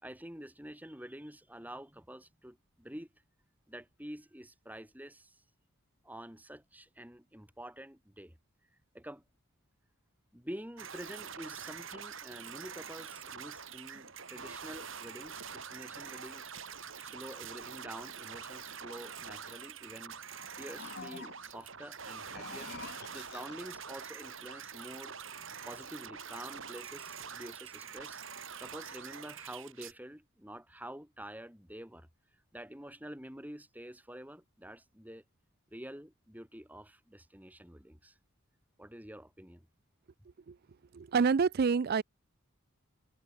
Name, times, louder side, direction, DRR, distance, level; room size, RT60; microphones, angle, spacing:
voice 1, 0.0-3.1 3.7-5.4 6.0-8.4 8.9-9.2 10.3-16.5 17.0-20.2 20.6-22.7 23.1-25.1 25.7-28.2 28.6-32.1 32.5-35.2 35.7-38.2 38.8-39.7, right 1 dB, 10° right, 3.2 m, -48 dB
sound 1, 10.8-29.9, right 6 dB, 65° right, 5.9 m, -45 dB
sound 2, 20.3-21.6 22.2-23.8, left 5 dB, 50° left, 1.2 m, -48 dB
voice 2, 40.9-42.0, right 5 dB, 45° right, 0.4 m, -27 dB
head